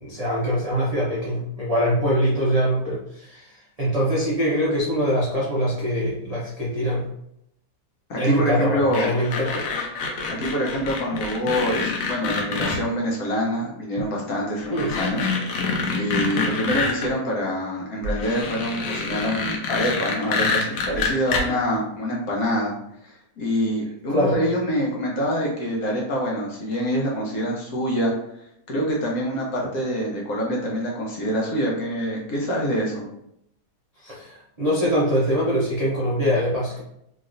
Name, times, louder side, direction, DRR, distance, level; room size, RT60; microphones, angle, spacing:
voice 1, 0.0-7.0 8.2-9.6 14.7-14.9 16.3-16.5 24.1-24.4 34.0-36.8, equal, 55° right, -7 dB, 0.4 m, -23 dB
voice 2, 8.1-9.1 10.3-22.7 23.0-28.1 28.7-33.0, equal, 65° left, -2 dB, 1.2 m, -26 dB
sound 1, 8.9-12.8 14.0-14.1 14.5-17.1 18.0-21.4, left 4 dB, 80° left, 1.2 m, -26 dB
3.1 x 2.9 x 2.5 m, 0.76 s
omnidirectional pair, 1.8 m